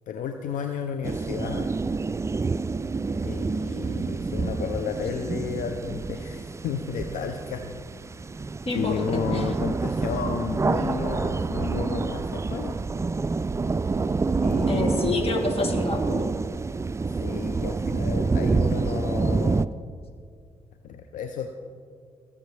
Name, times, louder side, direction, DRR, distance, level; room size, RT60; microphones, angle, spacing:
voice 1, 0.1-1.7 3.2-7.8 8.7-12.8 14.4-15.2 17.1-19.7 20.8-21.5, left 6 dB, 80° left, 6 dB, 0.6 m, -32 dB
sound 1, 1.0-19.7, right 4 dB, 20° right, 0.3 m, -27 dB
voice 2, 8.7-9.0 9.3-9.4 14.7-16.3, left 3 dB, 45° left, 3 dB, 2.0 m, -27 dB
18.0 x 7.2 x 3.4 m, 2.1 s
supercardioid pair, 50°, 13 cm